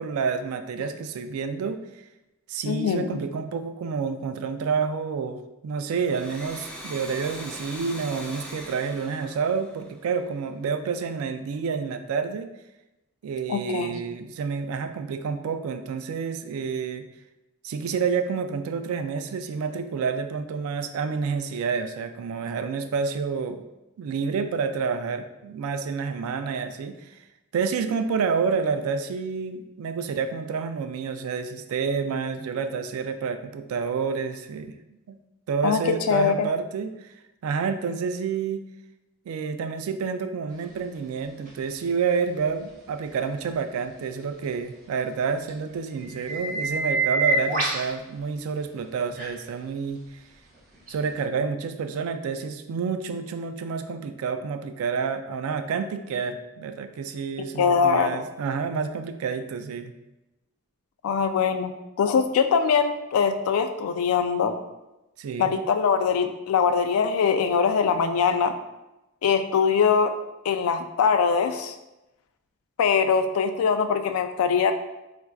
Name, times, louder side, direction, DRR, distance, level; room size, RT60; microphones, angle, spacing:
voice 1, 0.0-1.8 2.5-12.5 13.2-17.0 17.6-23.7 24.0-27.2 27.5-34.7 35.1-35.2 35.5-37.0 37.4-38.6 39.3-50.0 50.9-59.9 65.2-65.6, right 5 dB, 85° right, 9 dB, 0.3 m, -29 dB
voice 2, 2.7-3.1 13.5-14.0 35.6-36.5 57.6-58.2 61.0-61.7 62.0-64.5 65.4-68.5 69.2-70.1 70.4-71.7 72.8-74.7, left 6 dB, 85° left, 7 dB, 0.3 m, -22 dB
Domestic sounds home sounds, 5.9-10.4, equal, 5° left, 0.4 m, -41 dB
sound 1, 41.5-41.6 45.5-45.6 46.0-47.9 49.1-49.3 50.9-51.0, right 3 dB, 40° right, 0.7 m, -26 dB
4.3 x 2.4 x 2.3 m, 0.97 s
head